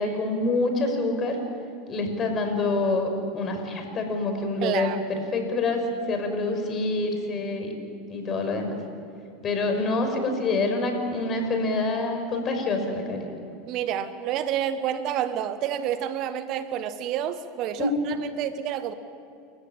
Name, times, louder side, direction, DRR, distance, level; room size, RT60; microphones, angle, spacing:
voice 1, 0.0-1.4 1.9-7.7 8.1-8.8 9.4-13.3 17.8-17.9, left 2 dB, 35° left, 5 dB, 5.6 m, -26 dB
voice 2, 4.6-5.0 13.7-18.9, right 10 dB, 50° right, 12 dB, 1.2 m, -29 dB
29.0 x 14.5 x 8.9 m, 2.5 s
hypercardioid pair, 90°, 0 cm